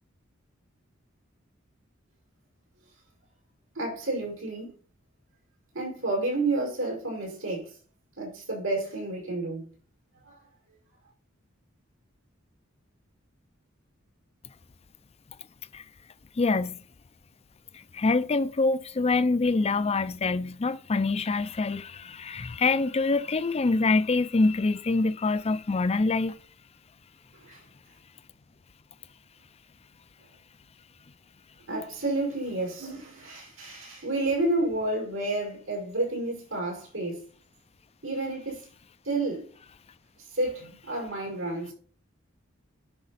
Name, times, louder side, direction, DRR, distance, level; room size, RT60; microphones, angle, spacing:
voice 1, 3.7-4.7 5.7-7.7 8.2-9.7 10.2-10.4 27.3-27.6 31.7-37.2 38.0-38.7 39.0-39.5 40.2-41.7, right 2 dB, 90° right, 5.6 m, -30 dB
voice 2, 16.4-16.8 17.7-26.4, left 3 dB, 30° left, 0.5 m, -25 dB
10.5 x 6.0 x 4.1 m
head